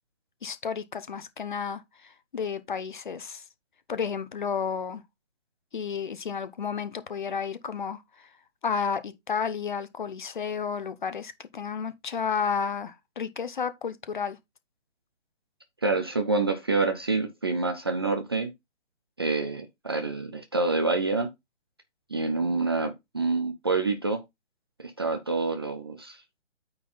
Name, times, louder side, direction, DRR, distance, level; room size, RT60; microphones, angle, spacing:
voice 1, 0.4-1.8 2.3-3.4 3.9-5.0 5.7-8.0 8.6-14.4, left 6 dB, 40° left, 0.9 m, -31 dB
voice 2, 15.8-18.5 19.2-21.3 22.1-24.2 24.8-26.2, right 3 dB, 20° right, 0.6 m, -27 dB
9.1 x 4.0 x 4.0 m
figure-of-eight pair, 145°, 37 cm